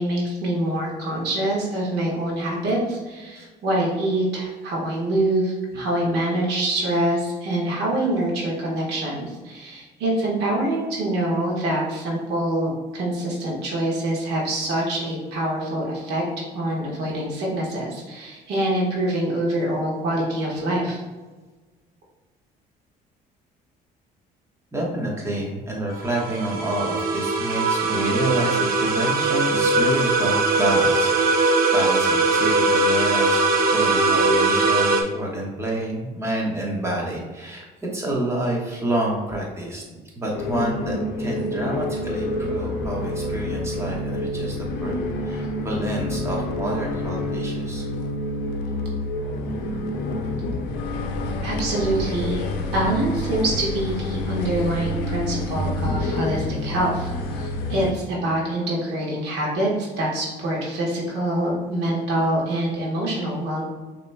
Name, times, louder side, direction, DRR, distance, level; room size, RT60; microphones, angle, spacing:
voice 1, 0.0-16.2 16.5-21.0 51.4-52.4 52.7-63.6, right 1 dB, 80° right, -3 dB, 1.3 m, -25 dB
voice 2, 24.7-33.4 33.7-37.7 37.9-39.8 40.1-45.0 45.3-47.8, right 1 dB, 15° right, -2 dB, 1.2 m, -28 dB
sound 1, 25.9-35.0, right 3 dB, 60° right, 0.7 m, -20 dB
sound 2, 40.3-57.9, left 1 dB, 90° left, 0.5 m, -28 dB
5.9 x 3.0 x 2.2 m, 1.3 s
cardioid pair, 110°, 17 cm